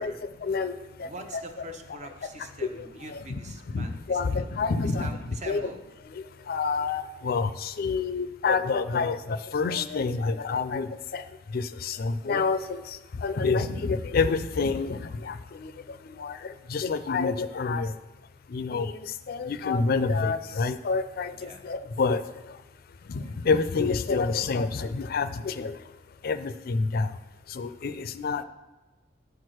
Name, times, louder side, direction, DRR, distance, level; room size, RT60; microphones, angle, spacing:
voice 1, 0.0-1.4 2.7-3.4 3.7-5.2 5.5-5.7 6.5-11.2 11.5-15.7 16.2-17.9 18.5-22.2 23.1-25.8 26.2-27.1 27.5-28.4, left 4 dB, 55° left, 12 dB, 0.4 m, -28 dB
voice 2, 1.0-4.5 4.8-5.8 21.4-21.6 27.8-27.9, right 2 dB, 40° right, 5 dB, 0.8 m, -43 dB
8.0 x 4.6 x 6.3 m, 1.1 s
head